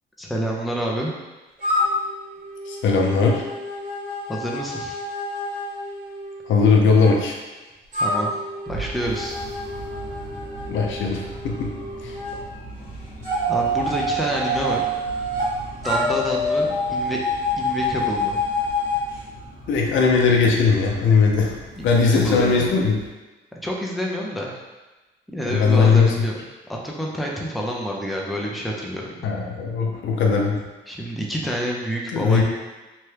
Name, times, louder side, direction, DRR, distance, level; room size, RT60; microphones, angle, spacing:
voice 1, 0.2-1.1 4.3-5.0 8.0-8.3 8.7-9.4 13.5-14.8 15.7-17.2 17.6-18.4 21.7-22.7 23.6-24.6 25.3-26.3 26.7-29.2 30.9-32.4, equal, ahead, -2 dB, 0.5 m, -28 dB
sound 1, 1.6-7.1 7.9-12.4 13.2-15.5 15.8-19.1, left 1 dB, 40° right, 1.3 m, -27 dB
voice 2, 2.7-3.4 6.5-7.4 10.7-11.7 12.0-12.2 19.7-21.5 21.8-23.0 25.5-26.1 29.2-30.6 32.1-32.4, left 5 dB, 75° left, 0 dB, 0.6 m, -19 dB
sound 2, 8.7-23.1, right 2 dB, 45° left, 1.0 m, -39 dB
3.0 x 2.2 x 3.2 m, 1.2 s
cardioid pair, 90°, 20 cm